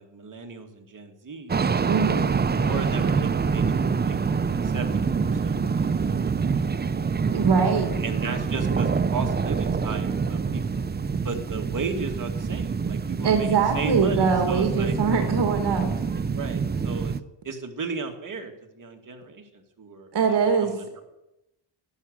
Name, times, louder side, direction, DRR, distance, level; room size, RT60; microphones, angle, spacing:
voice 1, 0.0-1.6 2.5-6.6 7.0-7.1 8.0-10.8 11.2-15.0 16.2-17.1 17.4-21.0, right 4 dB, 40° right, 4 dB, 2.5 m, -36 dB
sound 1, 1.5-17.2, right 5 dB, 20° right, 0.5 m, -26 dB
voice 2, 1.9-2.2 7.3-7.9 13.2-15.9 20.1-20.7, right 5 dB, 55° right, 4 dB, 2.3 m, -22 dB
12.0 x 12.0 x 8.3 m, 0.91 s
cardioid pair, 125°, 49 cm